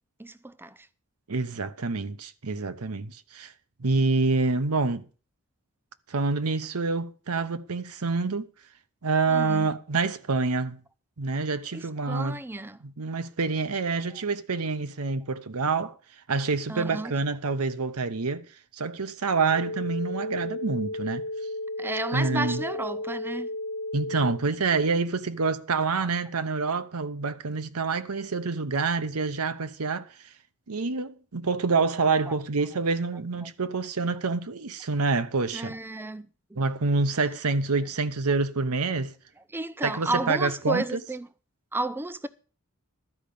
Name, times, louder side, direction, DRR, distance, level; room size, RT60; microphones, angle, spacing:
voice 1, 0.2-0.9 9.3-9.7 11.7-12.8 16.7-17.1 21.8-23.5 32.3-32.4 35.5-36.6 39.5-41.3 41.7-42.3, right 2 dB, 10° right, 0.5 m, -32 dB
voice 2, 1.3-3.5 3.8-5.0 6.1-8.5 9.0-10.8 11.2-12.4 12.8-16.0 16.3-18.4 18.7-21.2 22.1-22.6 23.9-30.1 30.7-35.8 36.6-39.1 39.8-41.0, right 4 dB, 90° right, 0.9 m, -27 dB
sound 1, 19.5-24.4, left 1 dB, 85° left, 0.8 m, -34 dB
12.5 x 5.2 x 8.5 m
head